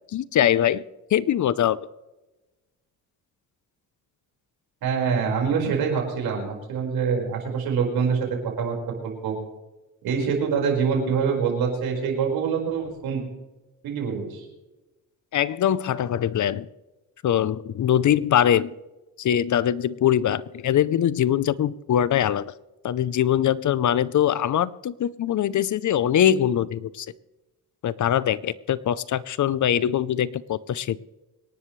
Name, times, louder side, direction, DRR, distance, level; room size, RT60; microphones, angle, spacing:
voice 1, 0.1-0.8 1.1-1.8 15.3-16.7 17.2-18.7 19.2-22.5 22.8-27.1 27.8-31.0, left 10 dB, 55° left, 18 dB, 0.7 m, -22 dB
voice 2, 4.8-9.4 10.0-13.2 13.8-14.4, right 6 dB, 85° right, 0 dB, 5.1 m, -25 dB
25.0 x 11.0 x 3.2 m, 1.1 s
cardioid pair, 90°, 36 cm